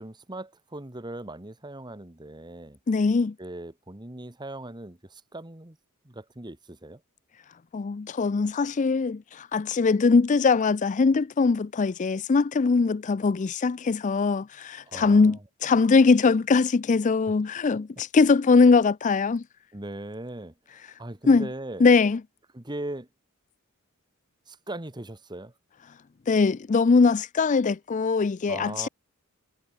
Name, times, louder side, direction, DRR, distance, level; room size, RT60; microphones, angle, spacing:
voice 1, 0.0-2.8 3.4-5.8 6.0-7.0 14.8-15.4 17.7-17.8 19.7-20.5 21.0-21.8 22.5-23.1 24.5-25.5 28.5-28.9, right 1 dB, 20° right, 1.5 m, -39 dB
voice 2, 2.9-3.3 7.7-19.4 21.3-21.5 21.8-22.2 26.3-28.9, left 4 dB, 35° left, 0.4 m, -21 dB
head